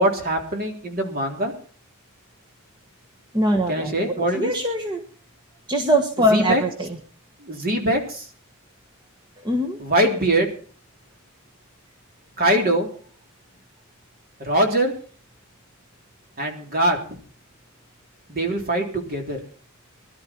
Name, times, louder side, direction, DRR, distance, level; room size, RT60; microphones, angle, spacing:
voice 1, 0.0-1.5 3.7-4.5 6.3-6.6 7.4-8.3 9.8-10.5 12.4-12.9 14.4-14.9 16.4-17.2 18.3-19.4, right 1 dB, 45° right, 3 dB, 3.4 m, -22 dB
voice 2, 3.3-5.0 5.7-6.9 9.4-9.8, equal, 20° right, 2 dB, 1.4 m, -22 dB
21.0 x 12.0 x 4.5 m, 0.43 s
head